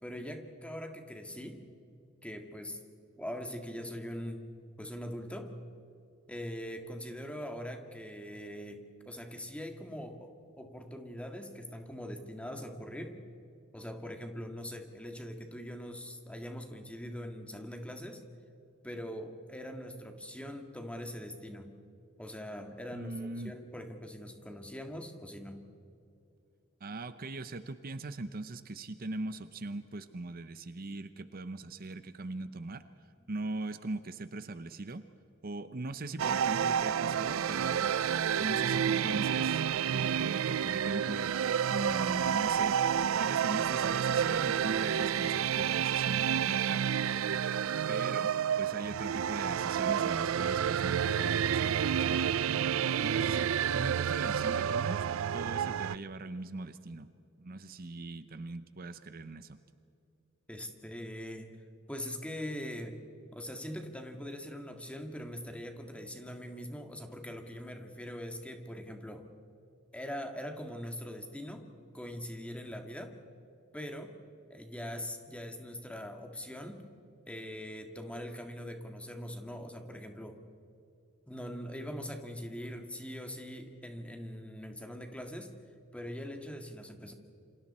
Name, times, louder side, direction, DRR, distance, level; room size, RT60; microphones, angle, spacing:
voice 1, 0.0-1.7 2.2-2.8 3.2-4.4 4.8-5.5 6.3-13.2 13.7-18.2 18.8-21.7 22.2-25.6 60.5-61.6 61.9-63.0 63.3-69.3 69.9-71.7 71.9-73.2 73.7-74.1 74.5-76.8 77.3-80.4 81.3-85.5 85.9-87.1, equal, 5° left, 5 dB, 1.8 m, -42 dB
voice 2, 22.9-23.5 26.8-32.8 33.3-35.0 35.4-37.9 38.4-41.4 41.7-42.7 43.1-46.8 47.9-52.6 53.0-55.1 55.3-57.1 57.4-59.6, right 2 dB, 45° right, 11 dB, 0.7 m, -40 dB
sound 1, 36.2-56.0, right 8 dB, 75° right, 0.4 m, -30 dB
28.5 x 26.5 x 4.3 m, 2.6 s
head